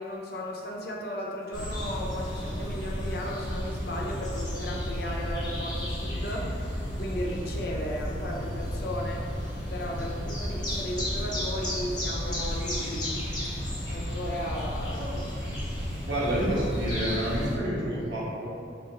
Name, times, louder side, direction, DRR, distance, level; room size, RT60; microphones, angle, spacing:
voice 1, 0.0-9.2 9.7-13.1 13.9-15.1, equal, 55° left, -1 dB, 0.6 m, -35 dB
sound 1, 1.5-17.6, equal, 25° left, 0.9 m, -33 dB
voice 2, 16.1-18.5, right 1 dB, 85° right, -7 dB, 1.2 m, -29 dB
4.0 x 3.0 x 2.9 m, 2.4 s
head